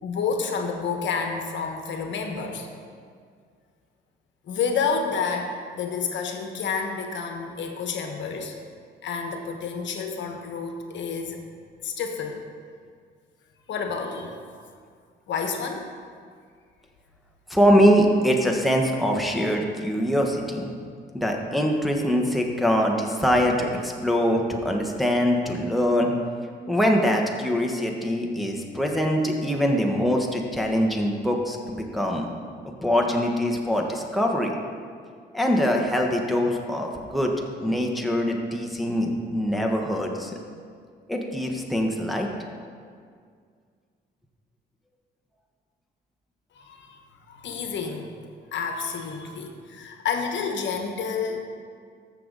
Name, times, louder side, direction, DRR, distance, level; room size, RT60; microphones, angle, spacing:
voice 1, 0.0-2.7 4.5-8.5 9.0-11.4 11.8-12.5 13.7-14.4 15.3-15.9 46.5-47.0 47.3-48.1 48.5-51.4, left 5 dB, 65° left, 4 dB, 1.2 m, -29 dB
voice 2, 17.5-20.7 21.1-26.1 26.7-32.3 32.8-34.5 35.3-37.3 37.6-40.4 41.1-42.3, equal, ahead, 0 dB, 1.3 m, -23 dB
13.5 x 6.9 x 4.0 m, 2.1 s
cardioid pair, 90°, 20 cm